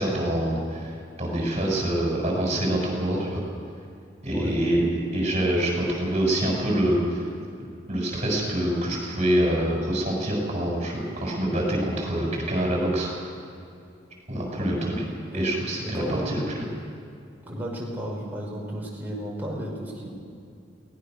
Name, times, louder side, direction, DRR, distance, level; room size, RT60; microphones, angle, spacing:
voice 1, 0.0-3.4 4.2-4.8 5.1-7.3 7.9-13.1 14.3-14.9 15.3-16.7, right 1 dB, 35° right, -1 dB, 6.8 m, -25 dB
voice 2, 15.8-16.3 17.5-20.1, right 1 dB, 10° right, -3 dB, 5.0 m, -33 dB
22.5 x 18.5 x 6.6 m, 2.5 s
head